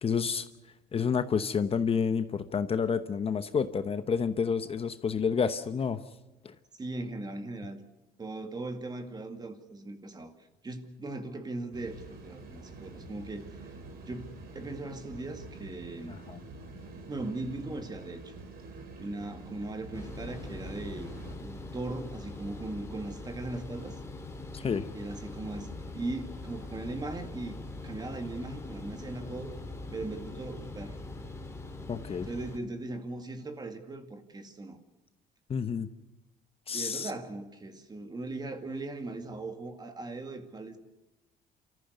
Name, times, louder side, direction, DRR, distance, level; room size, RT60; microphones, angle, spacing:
voice 1, 0.0-0.5 0.9-6.0 6.4-6.5 16.1-16.4 24.5-24.9 31.9-32.3 35.5-35.9 36.7-37.1, left 6 dB, 35° left, 1.0 m, -29 dB
voice 2, 6.8-7.8 8.2-10.3 10.6-13.7 14.1-14.3 14.5-16.2 17.0-18.3 19.0-21.1 21.4-24.0 24.9-27.6 27.8-29.5 29.9-31.0 32.2-34.8 36.7-40.8, right 2 dB, 25° right, 2.2 m, -39 dB
sound 1, 11.7-21.3, right 2 dB, 65° right, 4.4 m, -47 dB
sound 2, 19.9-32.6, left 2 dB, 15° left, 2.8 m, -42 dB
sound 3, 24.0-31.4, left 1 dB, 5° right, 4.3 m, -56 dB
27.5 x 14.0 x 8.0 m
cardioid pair, 110°, 17 cm